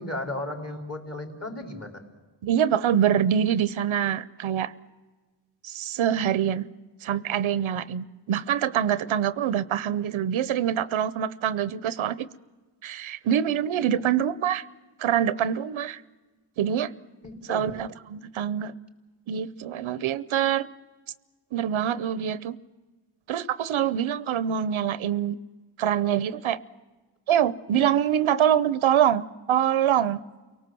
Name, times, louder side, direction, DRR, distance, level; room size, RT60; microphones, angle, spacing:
voice 1, 0.0-2.0 13.9-14.0 17.2-17.7, left 1 dB, 30° left, 4 dB, 4.2 m, -35 dB
voice 2, 2.4-4.7 5.6-6.7 7.0-12.3 12.8-14.6 15.0-16.0 16.6-16.9 17.5-18.7 19.3-20.7 21.5-22.6 23.3-25.4 25.8-26.6 27.3-30.2, right 9 dB, 90° right, 17 dB, 0.8 m, -25 dB
29.5 x 18.5 x 7.7 m, 1.3 s
cardioid pair, 80°, 46 cm